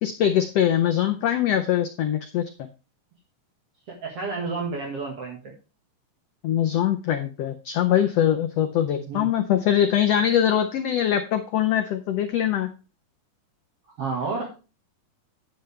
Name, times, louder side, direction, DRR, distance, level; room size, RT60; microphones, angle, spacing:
voice 1, 0.0-2.5 6.4-12.7, left 10 dB, 90° left, 6 dB, 1.4 m, -22 dB
voice 2, 3.9-5.5 9.0-9.3 14.0-14.5, right 4 dB, 50° right, -1 dB, 2.6 m, -30 dB
10.0 x 7.8 x 3.4 m, 0.32 s
omnidirectional pair, 3.8 m